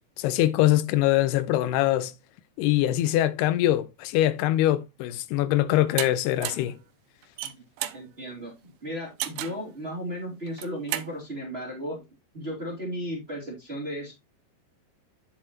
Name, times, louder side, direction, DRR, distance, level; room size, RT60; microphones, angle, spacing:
voice 1, 0.2-2.1 2.6-6.8, left 14 dB, 85° left, 2.7 m, -23 dB
sound 1, 6.0-6.1 6.4-6.7 7.2-8.0 9.2-9.6 10.5-11.1, right 14 dB, 90° right, 2.7 m, -32 dB
voice 2, 7.9-12.0 12.3-14.1, equal, 20° right, 1.8 m, -35 dB
8.5 x 7.5 x 2.9 m
omnidirectional pair, 4.6 m